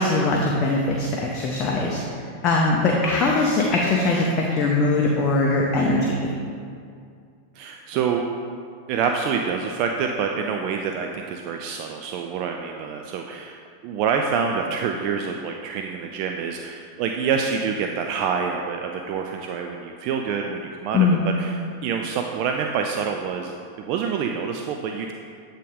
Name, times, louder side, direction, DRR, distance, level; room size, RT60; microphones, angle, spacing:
voice 1, 0.0-2.0 2.4-6.1 20.9-21.2, left 3 dB, 30° left, -2 dB, 0.6 m, -21 dB
voice 2, 7.5-8.3 8.9-25.1, right 6 dB, 45° right, 3 dB, 0.3 m, -27 dB
8.2 x 3.6 x 3.5 m, 2.2 s
figure-of-eight pair, 90°, 0 cm